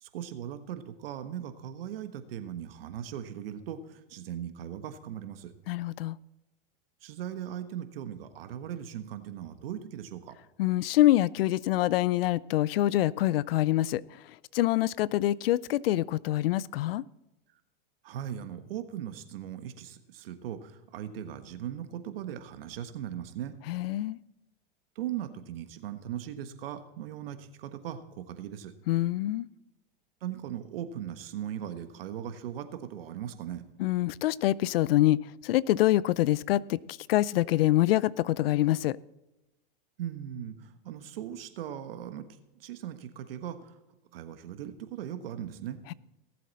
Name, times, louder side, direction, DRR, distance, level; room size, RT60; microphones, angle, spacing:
voice 1, 0.0-5.5 7.0-10.3 18.0-23.5 24.9-28.7 30.2-33.6 40.0-42.3 42.6-43.8 44.1-45.8, right 10 dB, 75° right, 1.4 m, -39 dB
voice 2, 5.7-6.2 10.6-14.0 14.5-17.0 23.7-24.2 28.9-29.5 33.8-36.8 37.1-39.0, left 15 dB, 80° left, 0.5 m, -25 dB
17.5 x 7.7 x 4.1 m
hypercardioid pair, 125°, 29 cm